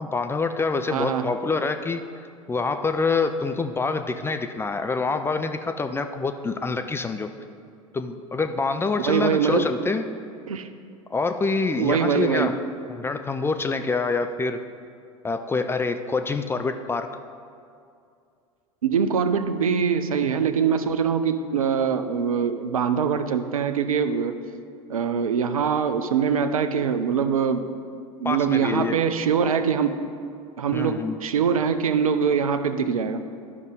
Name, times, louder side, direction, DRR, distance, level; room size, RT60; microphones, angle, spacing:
voice 1, 0.0-7.3 7.9-10.0 11.1-12.6 12.9-14.6 15.2-17.1 28.2-29.0 30.7-31.1, left 4 dB, 15° left, 7 dB, 0.4 m, -26 dB
voice 2, 0.9-1.3 9.0-9.7 10.5-10.7 11.8-12.6 18.8-24.3 24.9-27.7 28.2-30.0 30.6-33.2, right 6 dB, 80° right, 10 dB, 0.5 m, -23 dB
12.5 x 5.3 x 3.8 m, 2.4 s
figure-of-eight pair, 80°, 18 cm